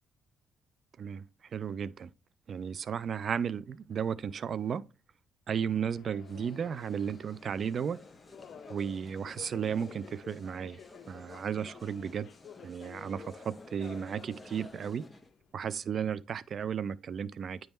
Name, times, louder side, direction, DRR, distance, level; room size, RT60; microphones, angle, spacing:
voice 1, 1.5-2.1 2.5-4.9 5.5-8.0 8.7-10.8 11.1-12.3 12.6-15.1 15.5-17.6, right 7 dB, 55° right, 0.3 m, -34 dB
Subway metro underground, 5.8-15.5, left 8 dB, 65° left, 0.6 m, -54 dB
sound 1, 6.2-15.3, left 2 dB, 15° left, 0.8 m, -53 dB
8.9 x 3.5 x 3.0 m
cardioid pair, 90°, 0 cm